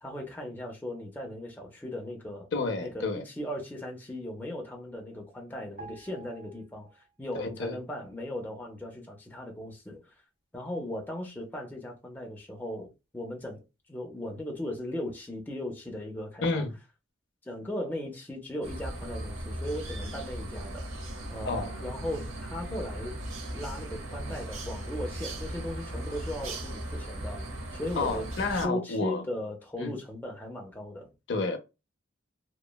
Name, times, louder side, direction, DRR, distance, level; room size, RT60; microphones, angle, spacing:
voice 1, 0.0-2.5 2.8-10.1 10.5-13.6 13.9-16.7 17.4-20.9 21.3-23.1 23.5-27.4 27.7-28.3 28.5-31.1, left 1 dB, 10° left, 0.4 m, -37 dB
voice 2, 2.5-3.2 7.3-7.8 16.4-16.7 21.4-21.7 28.0-29.2 29.8-29.9 31.3-31.6, left 3 dB, 60° left, 0.5 m, -30 dB
sound 1, 5.8-7.4 7.7-7.9, right 3 dB, 45° right, 0.9 m, -50 dB
sound 2, 18.6-28.7, right 1 dB, 85° right, 0.7 m, -37 dB
2.9 x 2.0 x 2.2 m
head